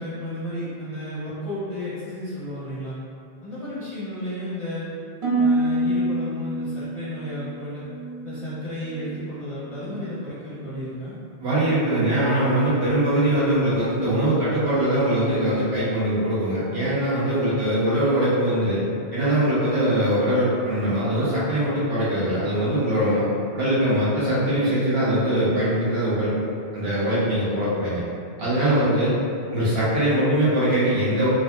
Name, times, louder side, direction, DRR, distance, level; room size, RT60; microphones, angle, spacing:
voice 1, 0.0-3.0 3.4-4.9 5.4-7.9 8.2-11.2 17.4-17.6 28.6-28.9, equal, 35° left, -11 dB, 0.6 m, -33 dB
Harp, 5.2-9.3 9.6-10.2 10.7-11.0, right 1 dB, 45° right, 0.4 m, -27 dB
voice 2, 11.4-18.8 19.1-23.3 23.5-26.3 26.7-28.0 28.4-29.1 29.5-31.3, right 1 dB, 70° right, -10 dB, 1.1 m, -22 dB
3.0 x 2.4 x 2.2 m, 2.3 s
omnidirectional pair, 1.0 m